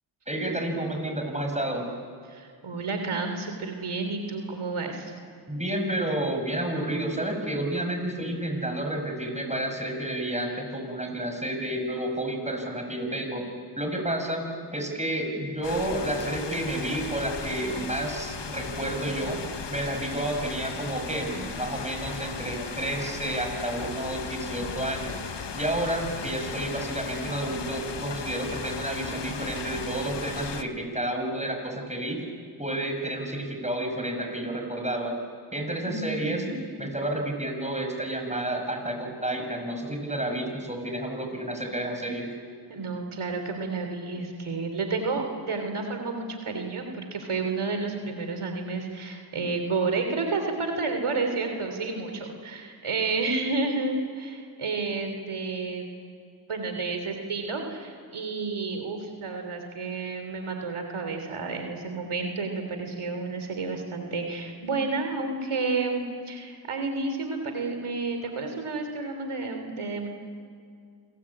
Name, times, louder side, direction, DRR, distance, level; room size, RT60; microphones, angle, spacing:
voice 1, 0.3-1.9 5.5-13.5 13.8-19.4 19.7-25.2 25.5-32.2 32.6-35.1 35.5-36.4 36.8-42.3, right 1 dB, 15° right, 3 dB, 6.7 m, -30 dB
voice 2, 2.3-5.1 35.8-36.6 42.7-55.9 56.5-70.1, right 3 dB, 85° right, 5 dB, 3.4 m, -31 dB
sound 1, 15.6-30.6, left 6 dB, 60° left, 1.4 m, -36 dB
27.5 x 19.5 x 8.7 m, 2.2 s
cardioid pair, 40°, 49 cm